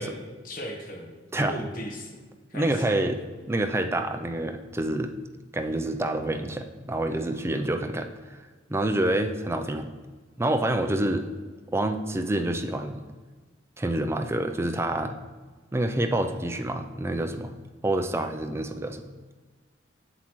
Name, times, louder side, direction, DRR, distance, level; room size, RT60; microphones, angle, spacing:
voice 1, 0.0-1.1 1.5-2.2 2.5-3.1, equal, 50° left, 0 dB, 1.2 m, -37 dB
voice 2, 2.5-3.2 3.5-5.1 5.5-8.4 8.7-9.9 10.4-11.3 11.7-13.0 13.8-15.2 15.7-17.6 17.8-19.0, right 1 dB, 15° right, 6 dB, 0.4 m, -27 dB
7.8 x 7.3 x 3.0 m, 1.4 s
head